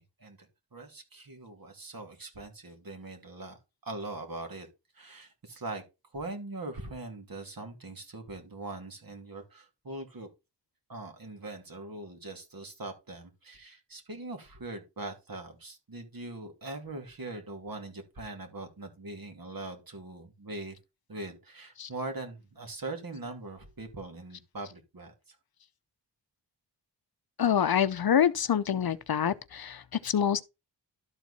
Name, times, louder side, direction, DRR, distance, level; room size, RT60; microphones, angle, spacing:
voice 1, 0.0-4.7 4.9-5.8 6.1-10.3 10.9-20.8 21.1-25.4, right 2 dB, 50° right, 2.7 m, -41 dB
voice 2, 27.4-30.4, left 9 dB, 55° left, 0.7 m, -26 dB
12.5 x 4.4 x 4.1 m
cardioid pair, 65°, 43 cm